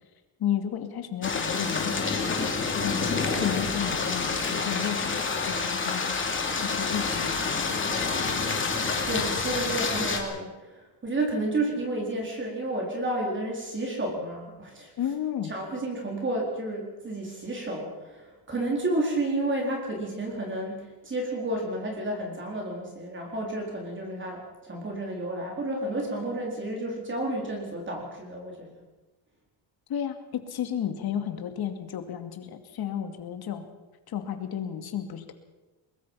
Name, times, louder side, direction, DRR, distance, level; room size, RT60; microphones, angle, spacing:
voice 1, 0.4-6.2 6.6-8.2 15.0-15.5 29.9-33.7 34.1-35.3, left 9 dB, 50° left, 7 dB, 2.5 m, -33 dB
sound 1, 1.2-10.2, left 4 dB, 25° left, 2.8 m, -28 dB
voice 2, 9.1-14.9 15.5-28.7, right 1 dB, 25° right, 0 dB, 4.3 m, -31 dB
22.5 x 21.0 x 5.7 m, 1.1 s
cardioid pair, 145°, 46 cm